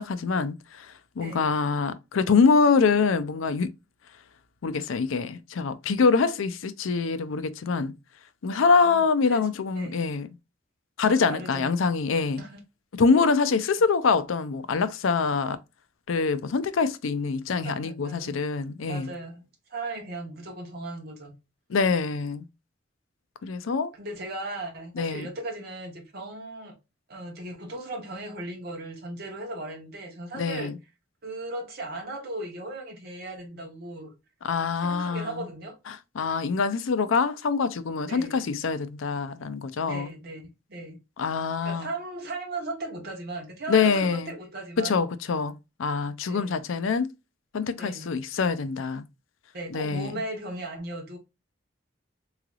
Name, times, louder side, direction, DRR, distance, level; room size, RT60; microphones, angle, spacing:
voice 1, 0.0-3.7 4.6-7.9 8.4-10.3 11.0-12.4 12.9-15.6 16.1-19.1 21.7-22.4 23.4-23.9 25.0-25.3 30.3-30.7 34.4-35.4 35.9-40.1 41.2-41.9 43.7-44.3 44.8-47.1 47.5-49.0 49.7-50.2, left 5 dB, 85° left, 0.4 m, -25 dB
voice 2, 1.2-1.5 8.8-10.0 11.1-11.7 12.4-12.6 17.6-18.4 18.7-19.4 19.7-21.3 24.0-26.8 27.1-30.7 31.2-34.1 34.8-35.8 38.1-38.4 39.6-41.0 41.6-45.0 46.3-46.5 47.8-48.1 49.5-51.2, right 2 dB, 50° right, 0.9 m, -37 dB
3.8 x 3.2 x 2.3 m
head